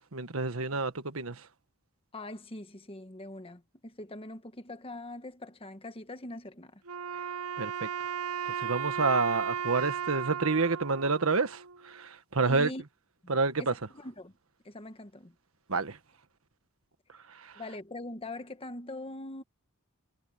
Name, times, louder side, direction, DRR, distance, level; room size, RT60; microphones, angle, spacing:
voice 1, 0.0-1.4 7.6-7.9 8.6-12.7 13.3-13.7 15.7-16.0, right 4 dB, 70° right, 1.4 m, -28 dB
voice 2, 2.1-6.8 12.4-12.8 13.2-14.4 14.6-15.3 17.5-19.4, left 1 dB, 25° left, 1.4 m, -42 dB
Wind instrument woodwind instrument, 6.8-12.0, right 8 dB, 85° right, 0.9 m, -35 dB
head